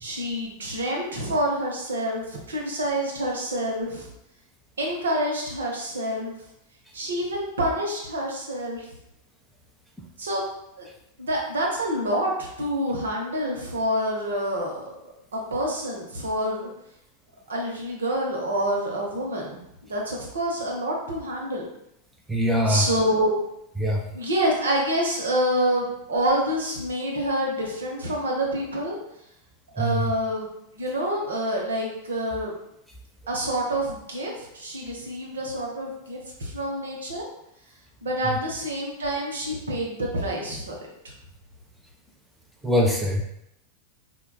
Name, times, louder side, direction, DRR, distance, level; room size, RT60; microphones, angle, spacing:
voice 1, 0.0-4.1 4.8-6.3 6.9-8.9 10.2-10.5 10.8-10.9 11.2-16.7 17.5-21.6 22.7-23.3 24.1-29.0 29.7-30.5 30.7-32.5 33.3-37.3 38.0-40.7, right 1 dB, 65° right, -1 dB, 0.7 m, -27 dB
voice 2, 22.3-22.8 23.8-24.0 29.8-30.1 42.6-43.2, equal, 5° right, -1 dB, 0.4 m, -22 dB
4.4 x 2.2 x 2.2 m, 0.80 s
figure-of-eight pair, 90°, 0 cm